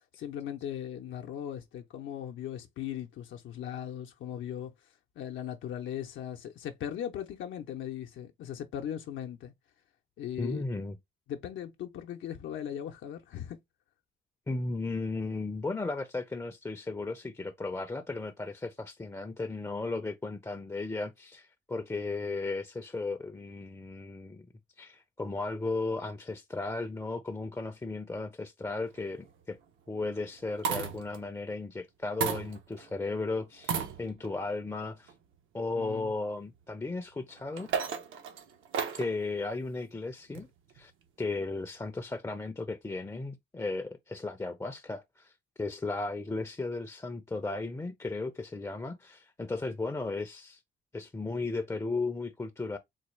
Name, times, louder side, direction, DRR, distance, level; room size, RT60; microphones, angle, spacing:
voice 1, 0.2-4.7 5.2-9.5 10.2-10.6 11.3-13.6 35.7-36.1, left 10 dB, 75° left, 0.6 m, -38 dB
voice 2, 10.4-11.0 14.5-24.5 24.8-29.6 29.9-35.1 35.5-37.7 39.0-40.5 40.7-40.9 41.2-50.6 50.9-52.8, left 3 dB, 15° left, 0.4 m, -35 dB
sound 1, 29.0-29.3 30.3-31.2 32.2-32.9 33.6-34.4 35.1-35.2 37.3-39.2 40.4-40.8, right 7 dB, 80° right, 0.9 m, -34 dB
3.9 x 2.2 x 3.1 m
cardioid pair, 90°, 20 cm